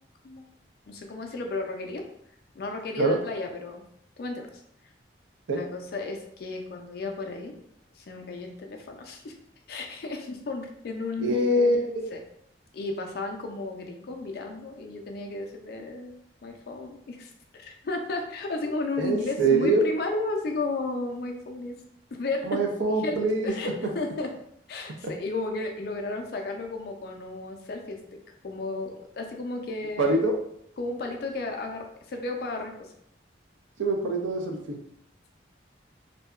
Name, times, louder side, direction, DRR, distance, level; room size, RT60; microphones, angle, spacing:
voice 1, 0.9-2.0 2.5-3.8 4.2-4.6 5.5-7.5 8.0-9.3 9.7-11.5 12.1-12.2 12.7-21.8 22.1-22.6 23.0-24.3 24.7-28.2 28.4-30.2 30.8-32.9, left 3 dB, 55° left, 3 dB, 0.4 m, -33 dB
voice 2, 11.2-12.1 19.0-19.8 22.4-23.5 30.0-30.3 33.8-34.8, right 2 dB, 85° right, 2 dB, 0.5 m, -24 dB
2.7 x 2.2 x 2.3 m, 0.71 s
head